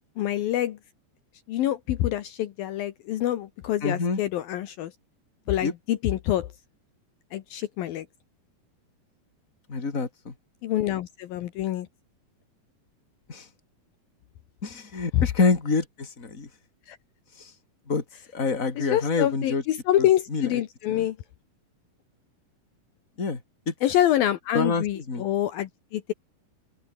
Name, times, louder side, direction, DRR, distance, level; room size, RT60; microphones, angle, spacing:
voice 1, 0.2-0.8 1.5-4.9 5.5-6.5 7.3-8.1 10.6-11.9 15.1-15.2 16.9-17.0 18.8-21.2 23.8-26.1, left 13 dB, 70° left, 2.9 m, -26 dB
voice 2, 3.8-4.2 5.6-5.7 9.7-10.3 13.3-13.5 14.6-16.5 17.4-17.5 17.9-18.0 18.3-19.6 20.0-20.5 20.9-21.1 23.2-23.4 23.7-23.8 24.5-25.3, left 4 dB, 20° left, 3.5 m, -27 dB
open air
omnidirectional pair, 4.5 m